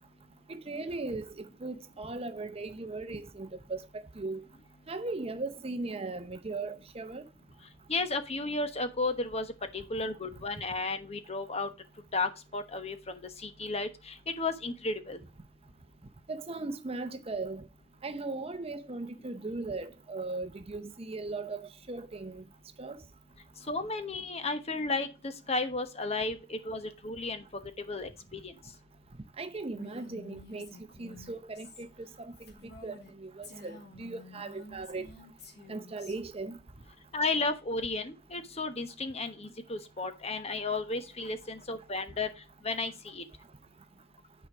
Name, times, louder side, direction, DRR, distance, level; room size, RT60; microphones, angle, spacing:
voice 1, 0.5-4.4 4.9-7.2 16.3-17.7 18.0-22.4 22.8-23.0 29.4-30.7 31.0-31.9 32.2-32.3 32.8-35.1 35.7-36.6, right 3 dB, 35° right, 0.7 m, -38 dB
voice 2, 7.9-9.5 9.7-11.7 12.1-15.2 23.7-27.4 27.9-28.5 37.1-42.3 42.6-43.2, left 3 dB, 35° left, 1.0 m, -33 dB
Female speech woman speaking, 29.7-33.1 33.4-36.1, left 2 dB, 60° left, 2.3 m, -50 dB
9.3 x 4.6 x 4.8 m
head